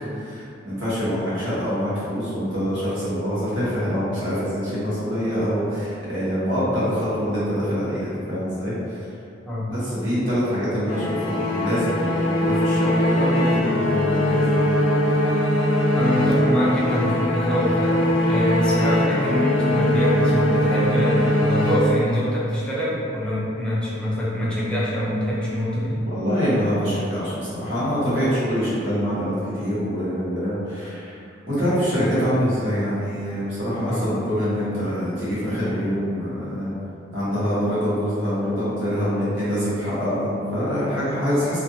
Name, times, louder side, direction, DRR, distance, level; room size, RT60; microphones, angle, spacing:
voice 1, 0.1-9.1 9.7-15.0 25.7-31.2 31.5-36.7 37.1-41.6, equal, 70° right, -11 dB, 1.1 m, -25 dB
sound 1, 10.9-22.4, left 1 dB, 80° left, 0.5 m, -21 dB
voice 2, 16.0-26.0 33.9-34.1, equal, 5° left, -8 dB, 0.5 m, -24 dB
2.5 x 2.4 x 2.7 m, 2.5 s
head